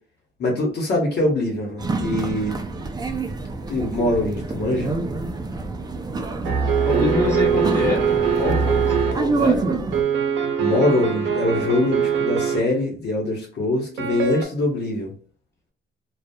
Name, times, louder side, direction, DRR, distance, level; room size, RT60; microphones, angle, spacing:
voice 1, 0.4-2.6 3.7-4.9 10.6-15.1, left 1 dB, 55° left, -2 dB, 0.9 m, -23 dB
sound 1, 1.8-10.0, right 3 dB, 20° right, 0.4 m, -27 dB
sound 2, 6.4-9.1 9.9-12.6 14.0-14.4, right 7 dB, 75° right, 0.6 m, -22 dB
voice 2, 6.8-8.1 8.4-9.7, left 3 dB, 10° left, -6 dB, 1.4 m, -25 dB
Bass guitar, 6.9-11.0, right 1 dB, 50° right, 0.9 m, -30 dB
2.6 x 2.3 x 2.2 m, 0.41 s
cardioid pair, 90°, 20 cm